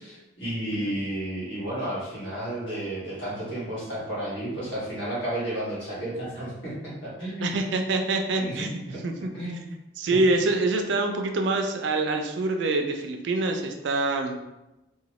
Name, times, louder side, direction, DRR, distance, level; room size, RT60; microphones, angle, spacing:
voice 1, 0.0-7.5 8.4-9.0 9.3-9.7 10.1-10.2, right 1 dB, 65° left, -8 dB, 1.4 m, -32 dB
voice 2, 7.4-9.3 10.0-14.4, right 2 dB, 60° right, 4 dB, 0.3 m, -25 dB
2.8 x 2.2 x 3.0 m, 0.97 s
head